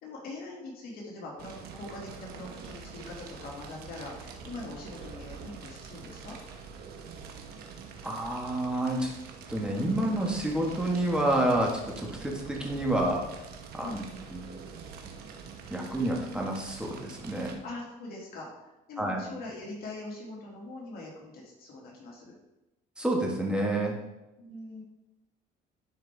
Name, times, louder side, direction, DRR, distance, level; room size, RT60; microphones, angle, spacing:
voice 1, 0.0-6.4 13.8-14.3 17.6-18.5 18.9-22.3 24.4-24.8, left 2 dB, 65° left, -2 dB, 2.2 m, -42 dB
Fire, 1.4-17.5, right 5 dB, 70° right, 1.1 m, -45 dB
voice 2, 8.0-9.1 9.5-13.2 13.8-14.0 14.3-14.5 15.7-17.5 19.0-19.2 23.0-24.0, right 1 dB, 5° right, -1 dB, 1.5 m, -29 dB
10.5 x 4.6 x 3.4 m, 0.96 s
cardioid pair, 130°, 17 cm